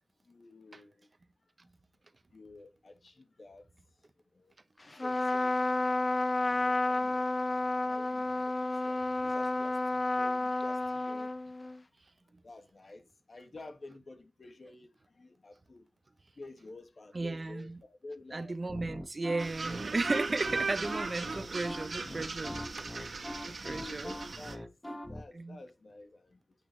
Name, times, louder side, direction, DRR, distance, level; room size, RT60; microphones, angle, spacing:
voice 1, 0.3-1.1 2.3-3.7 4.3-4.5 4.9-7.3 7.8-11.3 12.4-14.9 15.1-15.8 16.4-18.9 21.2-21.3 23.8-24.7 25.1-26.4, left 2 dB, 65° left, 2.3 m, -51 dB
Trumpet, 4.9-11.8, left 2 dB, 40° left, 0.9 m, -31 dB
voice 2, 17.1-17.8 18.3-23.2 23.4-24.1 25.3-25.6, right 3 dB, 50° right, 1.0 m, -35 dB
sound 1, 18.7-25.2, left 1 dB, 15° left, 2.0 m, -42 dB
sound 2, 19.4-24.6, right 4 dB, 80° right, 1.8 m, -37 dB
8.9 x 8.4 x 3.4 m
wide cardioid pair, 70°, 0 cm